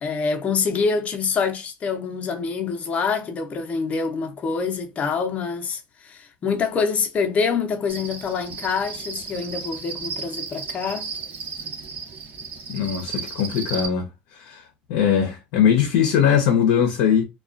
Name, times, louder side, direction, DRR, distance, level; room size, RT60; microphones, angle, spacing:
voice 1, 0.0-11.1, left 5 dB, 35° left, 0.6 m, -26 dB
Cricket, 7.9-13.9, right 5 dB, 45° right, 0.8 m, -34 dB
voice 2, 12.7-14.6 14.9-17.2, left 8 dB, 80° left, 0.6 m, -20 dB
2.3 x 2.2 x 2.4 m
supercardioid pair, 105°, 4 cm